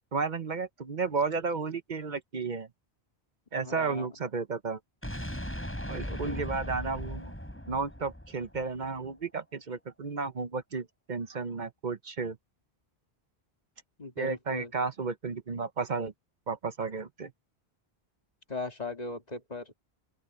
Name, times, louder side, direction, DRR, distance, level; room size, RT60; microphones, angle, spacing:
voice 1, 0.0-2.7 3.5-4.8 5.9-7.3 7.7-12.4 14.2-16.1 16.5-17.3, right 4 dB, 50° right, 0.9 m, -33 dB
voice 2, 3.6-4.1 6.0-6.4 14.0-14.7 18.5-19.7, left 3 dB, 40° left, 2.1 m, -38 dB
sound 1, 5.0-9.0, equal, 10° left, 4.1 m, -38 dB
open air
omnidirectional pair, 1.1 m